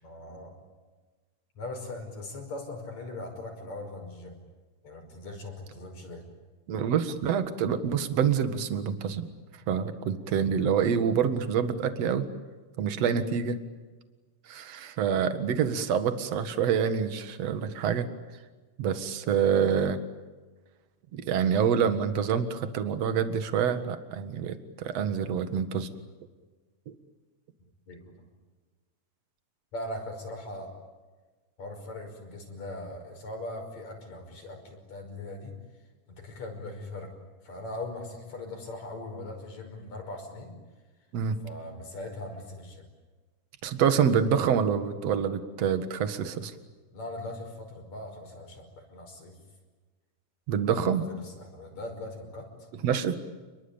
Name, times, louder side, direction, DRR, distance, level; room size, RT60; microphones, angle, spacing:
voice 1, 0.0-0.5 1.6-4.4 4.8-6.2 27.9-28.3 29.7-30.7 31.6-35.5 36.1-37.1 37.4-40.5 41.4-42.8 46.9-49.4 50.6-52.7, left 2 dB, 55° left, 4 dB, 6.7 m, -40 dB
voice 2, 6.7-9.3 9.7-12.3 12.8-13.6 14.5-18.1 18.8-20.0 21.1-25.9 41.1-41.4 43.6-46.5 50.5-51.1 52.8-53.2, right 7 dB, 55° right, 10 dB, 2.7 m, -26 dB
29.5 x 22.0 x 8.9 m, 1.3 s
omnidirectional pair, 3.8 m